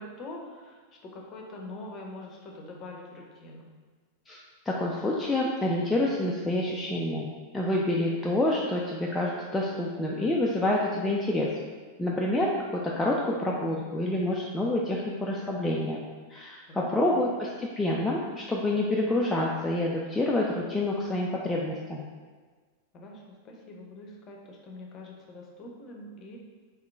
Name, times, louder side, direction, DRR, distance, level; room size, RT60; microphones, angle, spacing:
voice 1, 0.0-3.7 16.7-17.2 22.9-26.4, left 2 dB, 30° left, 0 dB, 0.7 m, -44 dB
voice 2, 4.7-11.5 12.0-16.0 16.3-22.1, left 1 dB, 10° left, -4 dB, 0.4 m, -28 dB
3.6 x 3.0 x 3.5 m, 1.4 s
figure-of-eight pair, 90°, 0 cm